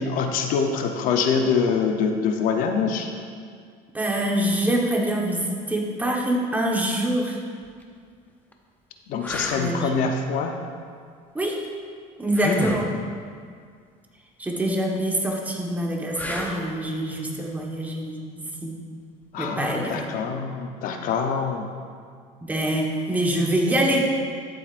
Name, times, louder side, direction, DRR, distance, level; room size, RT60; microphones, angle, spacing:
voice 1, 0.0-3.1 9.1-10.6 19.3-21.7, left 5 dB, 60° left, 4 dB, 0.8 m, -24 dB
voice 2, 3.9-7.4 9.6-9.9 11.3-11.6 12.2-12.9 14.4-18.7 19.4-20.0 22.4-24.1, right 1 dB, 10° right, -2 dB, 1.2 m, -25 dB
sound 1, 7.6-7.8 8.5-8.6 9.2-9.7 12.3-12.9 16.1-16.7 19.7-19.9, left 2 dB, 10° left, 0.7 m, -30 dB
13.0 x 7.9 x 2.5 m, 2.1 s
cardioid pair, 135°, 16 cm